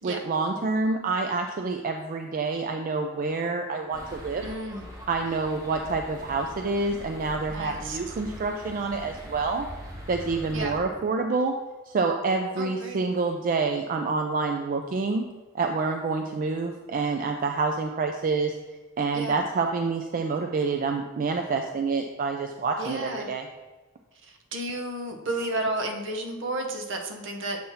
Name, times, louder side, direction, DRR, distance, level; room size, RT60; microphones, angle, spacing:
voice 1, 0.0-4.5 5.1-9.7 10.1-11.5 11.9-15.2 15.5-18.6 19.0-23.5, right 4 dB, 40° right, 4 dB, 0.4 m, -27 dB
sound 1, 3.9-10.8, equal, 15° right, 1.0 m, -42 dB
voice 2, 4.4-4.9 7.5-8.1 10.5-10.7 12.6-13.1 19.1-19.4 22.8-23.3 24.2-27.6, right 2 dB, 65° right, 3 dB, 0.9 m, -32 dB
7.6 x 2.8 x 5.5 m, 1.2 s
head